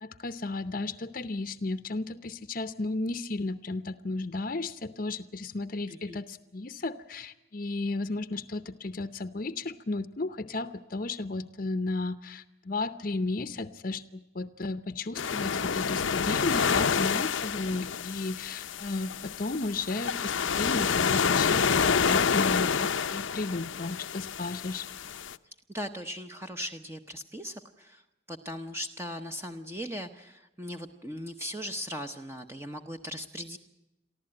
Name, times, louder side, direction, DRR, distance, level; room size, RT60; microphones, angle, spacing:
voice 1, 0.0-24.9, left 3 dB, 45° left, 10 dB, 0.7 m, -34 dB
sound 1, 15.1-25.3, left 6 dB, 85° left, 0.7 m, -28 dB
voice 2, 25.7-28.0 28.3-33.6, equal, 15° right, 6 dB, 0.8 m, -38 dB
24.0 x 14.5 x 8.8 m, 0.97 s
head